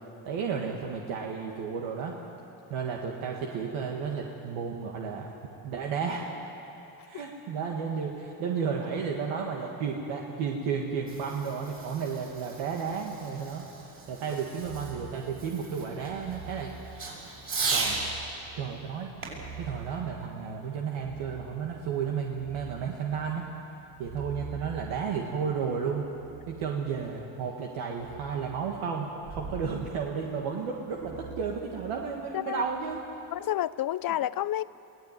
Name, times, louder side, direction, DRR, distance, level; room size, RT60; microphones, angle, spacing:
voice 1, 0.2-2.2 2.7-5.3 5.6-6.3 7.0-13.7 14.1-16.7 17.6-18.0 18.6-19.1 19.6-23.5 24.0-26.1 26.5-33.0, right 6 dB, 80° right, 0 dB, 1.9 m, -33 dB
Fireworks, 10.9-18.0 19.2-20.8, right 4 dB, 45° right, 7.0 m, -37 dB
sound 1, 14.5-15.1 15.9-16.6 17.6-18.3 18.9-19.9 20.8-21.5 21.9-22.8 23.8-26.5 27.8-28.4 29.2-29.7 30.8-32.1 32.5-32.8, right 5 dB, 65° right, 6.8 m, -45 dB
voice 2, 32.3-32.6 33.3-34.6, left 13 dB, 45° left, 18 dB, 0.5 m, -30 dB
22.5 x 16.5 x 9.2 m, 2.9 s
supercardioid pair, 80°, 48 cm